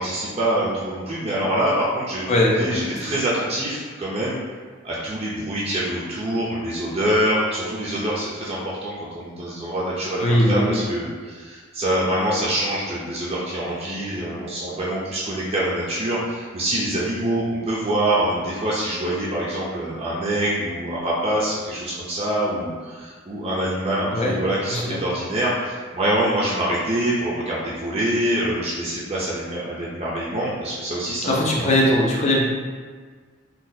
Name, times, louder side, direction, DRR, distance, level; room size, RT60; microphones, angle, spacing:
voice 1, 0.0-2.3 2.6-4.4 4.8-31.8, right 1 dB, 30° right, -7 dB, 0.5 m, -25 dB
voice 2, 2.3-2.8 10.2-10.8 24.1-24.3 24.7-25.0 31.3-32.5, left 1 dB, 35° left, -3 dB, 0.6 m, -20 dB
3.9 x 2.3 x 2.7 m, 1.5 s
head